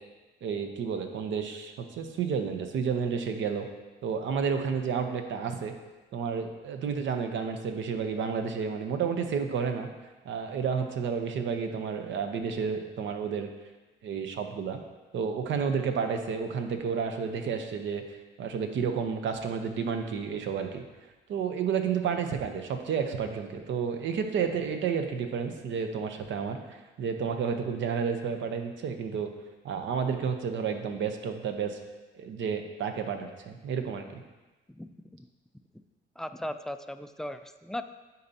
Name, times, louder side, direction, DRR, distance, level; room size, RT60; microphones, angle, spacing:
voice 1, 0.4-3.7 4.0-5.7 6.1-9.9 10.2-13.5 14.0-14.8 15.1-18.0 18.4-20.8 21.3-29.3 29.6-31.8 32.1-34.2, right 6 dB, 70° right, 6 dB, 0.8 m, -31 dB
voice 2, 34.7-35.2 36.2-37.8, left 1 dB, ahead, 9 dB, 0.3 m, -38 dB
10.5 x 4.1 x 2.8 m, 1.2 s
cardioid pair, 90°, 20 cm